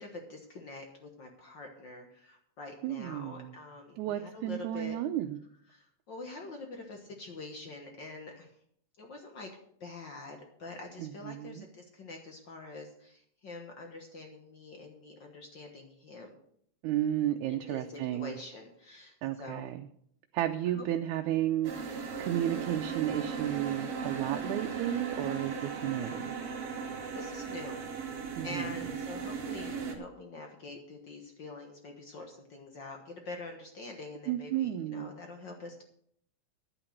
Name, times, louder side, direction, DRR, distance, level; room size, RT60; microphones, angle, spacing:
voice 1, 0.0-5.0 5.7-8.5 9.0-9.5 9.8-16.4 17.5-19.8 20.6-20.9 27.1-27.8 28.4-35.8, left 3 dB, 50° left, 3 dB, 1.5 m, -45 dB
voice 2, 2.8-3.5 4.0-5.4 11.0-11.7 16.8-18.3 19.2-19.9 20.3-26.2 28.4-28.7 34.3-35.1, right 12 dB, 90° right, 5 dB, 2.1 m, -33 dB
sound 1, 21.6-30.0, right 6 dB, 60° right, 2.4 m, -37 dB
10.5 x 8.9 x 6.5 m, 0.68 s
omnidirectional pair, 3.3 m